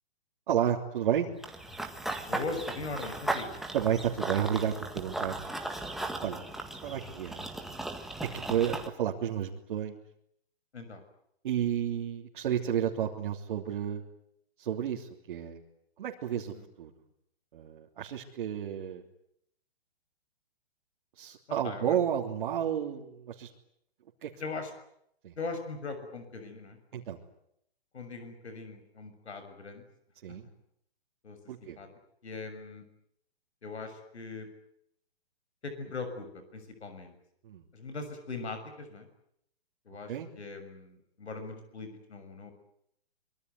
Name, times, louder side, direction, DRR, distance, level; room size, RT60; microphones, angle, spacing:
voice 1, 0.5-1.3 3.7-5.5 6.2-6.4 6.8-7.4 8.3-10.0 11.4-14.0 14.6-15.6 16.0-16.9 17.5-19.0 21.2-23.5 24.2-24.3 25.2-25.3 26.9-27.2 30.2-30.4 31.5-31.8 37.4-37.6 40.1-40.3, right 9 dB, 50° right, -1 dB, 3.2 m, -31 dB
Run / Bird vocalization bird call bird song, 1.4-8.9, right 2 dB, ahead, 1.8 m, -37 dB
voice 2, 2.3-3.5 10.7-11.0 16.5-16.6 21.6-22.0 24.4-24.7 25.4-26.8 27.9-29.8 31.2-31.9 32.2-32.8 33.6-34.5 35.6-37.1 37.7-39.1 39.9-42.5, left 3 dB, 90° left, 8 dB, 6.8 m, -40 dB
25.5 x 23.5 x 9.6 m, 0.75 s
hypercardioid pair, 155°, 32 cm